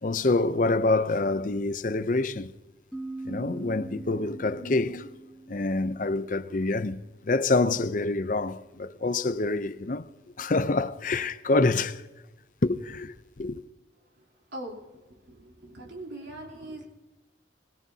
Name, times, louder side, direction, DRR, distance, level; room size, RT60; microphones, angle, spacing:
voice 1, 0.0-2.5 3.2-5.1 5.5-10.1 10.4-12.0 12.6-13.6, left 3 dB, 45° left, 0.6 m, -26 dB
sound 1, 2.9-6.5, right 2 dB, ahead, 1.9 m, -42 dB
voice 2, 15.3-16.9, right 1 dB, 70° right, 3.5 m, -40 dB
22.0 x 17.5 x 2.8 m
head